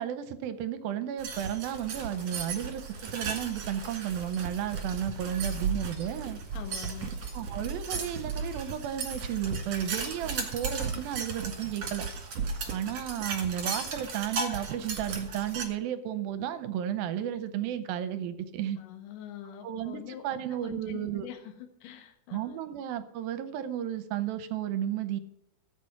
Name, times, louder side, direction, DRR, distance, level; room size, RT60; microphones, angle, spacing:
voice 1, 0.0-2.8 3.1-6.4 7.3-12.1 12.7-18.8 19.6-21.3 22.3-25.2, right 10 dB, 75° right, 11 dB, 2.4 m, -33 dB
sound 1, 1.2-15.6, right 5 dB, 50° right, 2.4 m, -35 dB
voice 2, 6.5-7.2 18.8-22.6, left 9 dB, 65° left, 5 dB, 2.7 m, -44 dB
13.0 x 7.6 x 5.8 m, 0.75 s
omnidirectional pair, 4.6 m